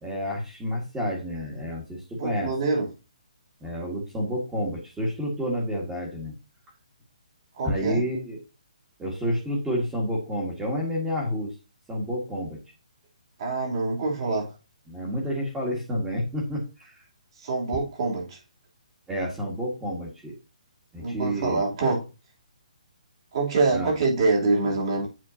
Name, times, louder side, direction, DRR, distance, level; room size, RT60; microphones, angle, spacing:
voice 1, 0.0-2.5 3.6-6.3 7.6-8.4 9.0-11.5 11.9-12.6 14.9-17.0 19.1-20.4 20.9-21.6 23.7-23.9, equal, 10° right, 1.7 m, -29 dB
voice 2, 2.2-2.9 7.5-8.0 13.4-14.6 17.4-18.4 21.0-22.1 23.3-25.1, right 3 dB, 45° right, 3.2 m, -25 dB
7.7 x 6.4 x 2.8 m
hypercardioid pair, 160°, 4 cm